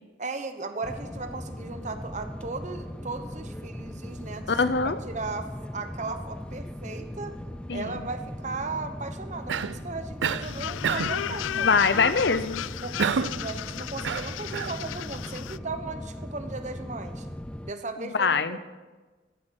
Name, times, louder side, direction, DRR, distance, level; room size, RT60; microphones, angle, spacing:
voice 1, 0.2-4.5 4.8-7.3 7.7-11.8 12.8-17.3 17.6-18.6, right 3 dB, 40° right, 8 dB, 1.1 m, -36 dB
sound 1, 0.8-17.7, left 1 dB, 5° left, 0.3 m, -39 dB
voice 2, 4.5-5.0 7.7-8.1 11.5-12.6 18.0-18.6, left 5 dB, 60° left, 12 dB, 0.7 m, -24 dB
Cough, 9.5-9.8 10.2-10.5 10.8-11.2 13.0-13.4 14.0-14.8, right 6 dB, 70° right, 0.5 m, -28 dB
sound 2, 10.4-15.6, left 10 dB, 85° left, 0.3 m, -34 dB
15.0 x 8.6 x 6.5 m, 1.3 s
head